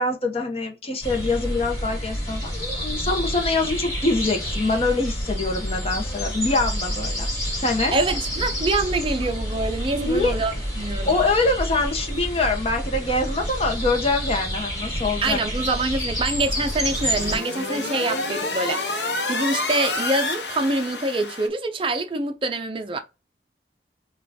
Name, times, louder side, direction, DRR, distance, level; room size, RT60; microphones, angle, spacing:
voice 1, 0.0-7.3 7.6-8.0 9.9-10.4 11.0-15.4, left 3 dB, 35° left, 0.7 m, -24 dB
sound 1, 1.0-17.4, equal, 20° left, 1.8 m, -29 dB
voice 2, 7.9-11.2 15.2-23.0, right 2 dB, 30° right, 0.4 m, -25 dB
sound 2, 16.5-21.5, left 3 dB, 75° left, 0.8 m, -28 dB
5.3 x 2.3 x 2.7 m
head